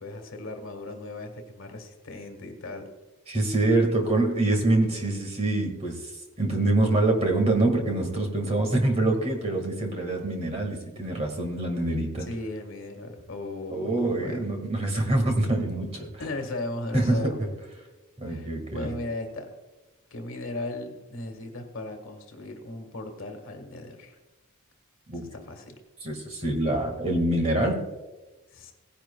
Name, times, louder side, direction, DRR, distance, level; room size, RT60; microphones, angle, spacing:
voice 1, 0.0-2.9 3.7-3.8 12.3-14.5 16.2-17.4 18.3-19.5 20.1-24.2 25.3-25.8 28.5-28.7, left 2 dB, 60° left, 5 dB, 1.6 m, -37 dB
voice 2, 3.3-6.1 6.4-12.3 13.7-16.1 16.9-17.2 18.2-18.9 25.1-25.2 26.0-27.8, right 2 dB, 30° right, 3 dB, 1.8 m, -25 dB
17.5 x 10.5 x 2.3 m, 1.2 s
head